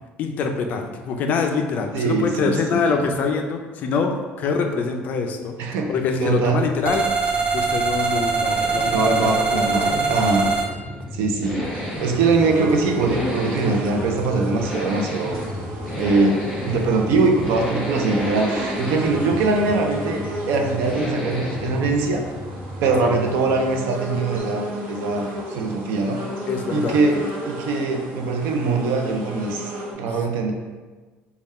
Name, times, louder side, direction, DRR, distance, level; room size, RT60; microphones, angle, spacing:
voice 1, 0.2-4.1 4.4-5.6 5.9-8.9 9.2-10.2 23.0-23.2 26.5-27.0, left 5 dB, 45° left, 4 dB, 0.4 m, -25 dB
voice 2, 1.9-3.1 5.6-5.9 6.2-6.6 8.9-10.5 11.1-11.7 12.0-15.4 16.0-22.3 22.8-26.2 26.7-30.5, right 3 dB, 85° right, 3 dB, 0.5 m, -22 dB
sound 1, 6.8-23.9, equal, 5° left, 0.7 m, -33 dB
sound 2, 6.8-10.7, right 4 dB, 35° right, 0.4 m, -22 dB
sound 3, 11.6-29.9, equal, 65° right, 0.9 m, -33 dB
3.5 x 2.3 x 4.2 m, 1.3 s
cardioid pair, 170°, 4 cm